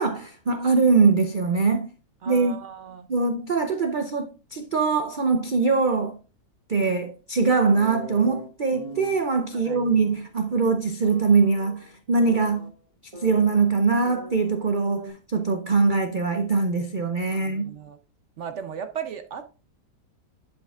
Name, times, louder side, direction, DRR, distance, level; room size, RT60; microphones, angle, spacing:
voice 1, 0.0-1.9 2.3-2.6 3.1-6.2 6.7-12.7 13.2-17.7, right 4 dB, 80° right, 0.4 m, -22 dB
voice 2, 2.2-3.1 9.5-9.8 17.3-18.0 18.4-19.4, right 8 dB, 60° right, 0.8 m, -36 dB
sound 1, 7.8-9.2 9.7-10.2 11.0-12.7 13.1-14.7 15.0-15.1, right 1 dB, 20° right, 1.6 m, -41 dB
11.0 x 5.2 x 2.4 m
omnidirectional pair, 1.8 m